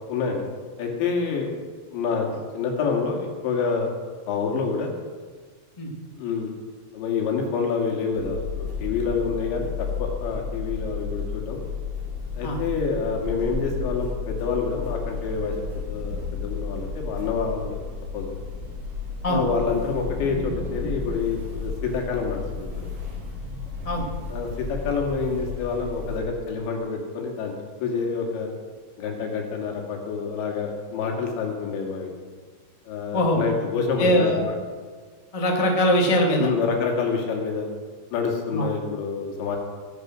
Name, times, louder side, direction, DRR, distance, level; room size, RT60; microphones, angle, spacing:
voice 1, 0.1-0.4 0.8-1.5 1.9-2.3 2.5-3.9 4.3-4.9 6.2-6.5 6.9-11.6 12.4-15.6 15.9-17.8 18.1-18.4 19.3-22.9 24.3-27.5 27.8-28.5 29.0-32.1 32.9-34.4 36.4-37.7 38.1-39.6, left 5 dB, 75° left, 1 dB, 4.4 m, -27 dB
sound 1, 8.1-26.2, left 4 dB, 50° right, 5.8 m, -33 dB
voice 2, 33.1-33.4 34.0-34.4 35.3-36.5 38.5-38.6, equal, 30° left, 0 dB, 0.6 m, -21 dB
22.0 x 8.5 x 6.2 m, 1.5 s
omnidirectional pair, 5.3 m